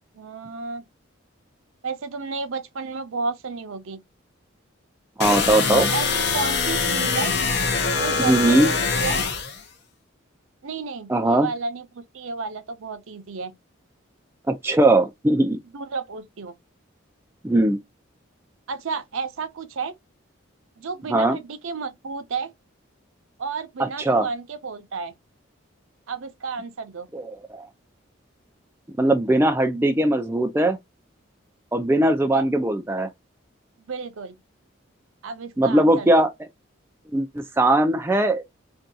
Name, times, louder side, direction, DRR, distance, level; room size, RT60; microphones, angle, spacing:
voice 1, 0.1-0.8 1.8-4.0 5.7-7.3 7.9-9.2 10.6-13.5 15.7-16.5 18.7-19.9 20.8-22.5 23.4-25.1 26.1-27.1 32.3-32.5 33.9-34.4 35.2-36.3, right 4 dB, 80° right, 0.5 m, -32 dB
sound 1, 5.2-9.6, left 4 dB, 55° left, 0.6 m, -23 dB
voice 2, 5.2-5.9 8.2-8.7 11.1-11.5 14.5-15.6 17.4-17.8 21.1-21.4 23.8-24.3 27.1-27.6 29.0-30.8 31.7-33.1 35.6-36.3 37.1-38.4, right 1 dB, 10° right, 0.3 m, -20 dB
2.6 x 2.3 x 3.7 m
head